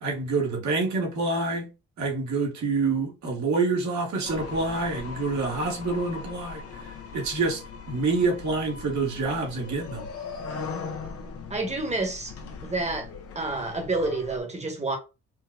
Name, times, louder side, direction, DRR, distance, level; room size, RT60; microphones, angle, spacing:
voice 1, 0.0-1.7 2.0-7.6 7.9-10.1, right 3 dB, 65° right, 1.5 m, -27 dB
sound 1, 4.2-14.4, left 5 dB, 50° left, 0.8 m, -39 dB
voice 2, 11.5-12.3 12.6-13.1 13.3-15.0, right 2 dB, 20° right, 1.2 m, -29 dB
4.5 x 2.2 x 2.3 m
cardioid pair, 90°, 30 cm